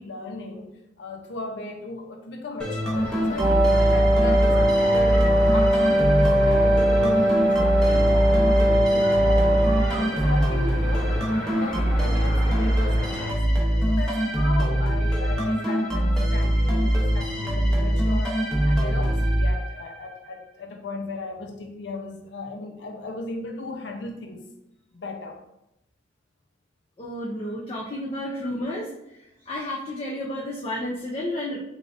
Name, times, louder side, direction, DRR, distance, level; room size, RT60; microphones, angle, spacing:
voice 1, 0.0-3.0 3.3-9.7 10.0-13.4 13.9-24.5 24.9-25.4 27.4-27.5 28.4-28.6, left 3 dB, 75° left, 4 dB, 0.6 m, -36 dB
sound 1, 2.6-20.1, equal, 5° left, 0.8 m, -23 dB
sound 2, 2.9-13.3, equal, 10° right, 1.4 m, -35 dB
Wind instrument woodwind instrument, 3.4-10.1, right 1 dB, 40° right, 0.6 m, -21 dB
voice 2, 27.0-28.9 29.5-31.6, left 1 dB, 30° left, -4 dB, 0.5 m, -31 dB
3.7 x 3.4 x 2.5 m, 0.88 s
head